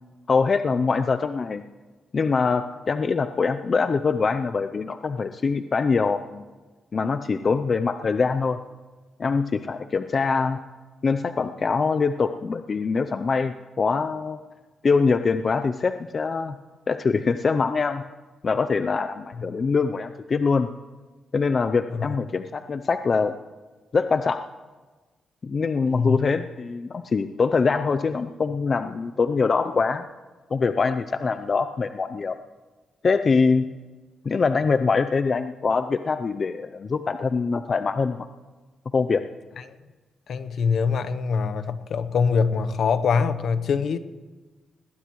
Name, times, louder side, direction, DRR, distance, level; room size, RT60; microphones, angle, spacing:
voice 1, 0.3-1.6 2.1-6.5 6.9-8.6 9.2-10.6 11.0-14.4 14.8-16.6 16.9-18.0 18.4-20.7 21.3-23.3 23.9-24.4 25.4-30.1 30.5-32.4 33.0-33.7 34.2-38.3 38.9-39.2, left 4 dB, 45° left, 9 dB, 0.5 m, -23 dB
voice 2, 25.9-26.2 39.7-39.8 40.3-44.0, left 5 dB, 65° left, 12 dB, 0.8 m, -24 dB
20.5 x 17.0 x 3.1 m, 1.3 s
cardioid pair, 85°, 0 cm